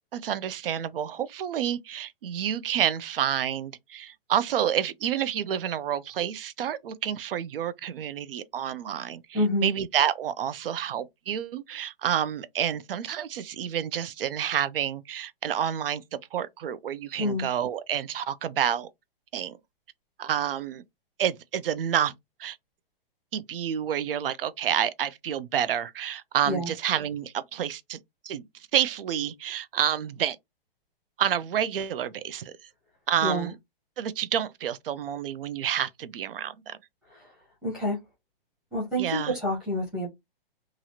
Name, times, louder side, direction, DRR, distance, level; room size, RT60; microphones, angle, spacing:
voice 1, 0.1-18.9 19.3-19.6 20.2-20.8 21.2-22.1 22.4-22.6 23.3-28.4 28.7-30.4 31.2-32.5 33.1-33.6 34.0-36.8 39.0-39.4, right 9 dB, 70° right, 0.4 m, -29 dB
voice 2, 9.3-9.7 17.2-17.5 26.5-26.7 33.2-33.5 37.1-37.3 37.6-38.0 38.7-40.1, equal, ahead, 0.7 m, -28 dB
2.9 x 2.4 x 2.7 m
hypercardioid pair, 180°, 30 cm